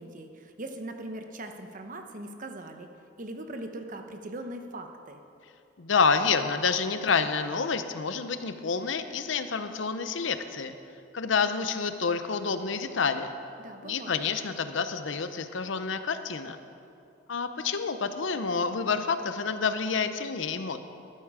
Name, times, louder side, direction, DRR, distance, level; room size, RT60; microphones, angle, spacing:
voice 1, 0.0-2.9 3.2-5.2 13.6-14.3, right 1 dB, 45° right, 5 dB, 0.9 m, -40 dB
voice 2, 5.8-10.7 11.1-13.3 13.8-16.6 17.3-20.8, left 5 dB, 80° left, 10 dB, 0.7 m, -28 dB
12.5 x 12.0 x 4.9 m, 2.6 s
head